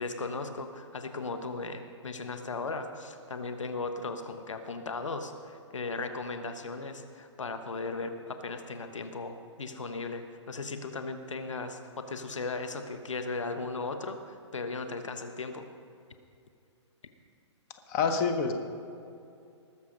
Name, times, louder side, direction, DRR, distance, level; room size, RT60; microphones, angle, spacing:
voice 1, 0.0-15.6, left 3 dB, 90° left, 7 dB, 1.2 m, -37 dB
voice 2, 17.9-18.5, left 5 dB, 35° left, 4 dB, 1.2 m, -26 dB
19.5 x 7.2 x 5.3 m, 2.6 s
hypercardioid pair, 140°, 15 cm